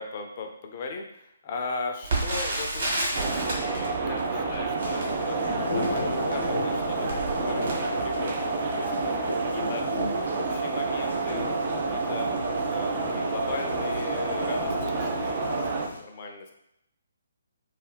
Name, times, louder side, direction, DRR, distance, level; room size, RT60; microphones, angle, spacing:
voice 1, 0.0-8.4 8.8-9.8 10.3-12.3 12.6-16.5, left 4 dB, 40° left, 2 dB, 0.4 m, -38 dB
Crackle, 2.0-9.0 9.6-9.7 10.0-10.3 10.9-11.1 11.4-11.5, right 2 dB, 55° right, 1.0 m, -33 dB
sound 1, 3.1-15.9, right 3 dB, 40° right, 0.3 m, -29 dB
sound 2, 4.8-16.0, left 1 dB, 85° left, 0.7 m, -35 dB
2.3 x 2.1 x 3.3 m, 0.79 s
figure-of-eight pair, 140°, 0 cm